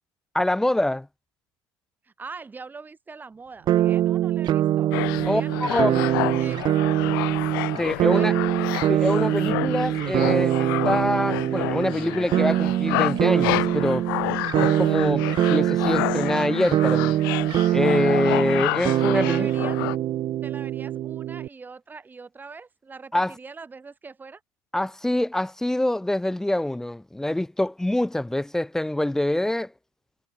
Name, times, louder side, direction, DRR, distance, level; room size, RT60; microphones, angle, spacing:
voice 1, 0.3-1.1 5.3-6.1 7.8-8.3 8.9-14.1 14.6-17.2 17.7-19.5 23.1-23.3 24.7-29.7, left 1 dB, 5° left, 0.6 m, -25 dB
voice 2, 2.0-6.0 6.3-6.6 8.0-8.4 19.1-19.8 20.4-24.4, right 4 dB, 15° right, 3.7 m, -42 dB
sound 1, 3.7-21.5, right 13 dB, 40° right, 0.7 m, -23 dB
sound 2, 4.9-20.0, left 23 dB, 80° left, 1.5 m, -30 dB
supercardioid pair, 125°, 11 cm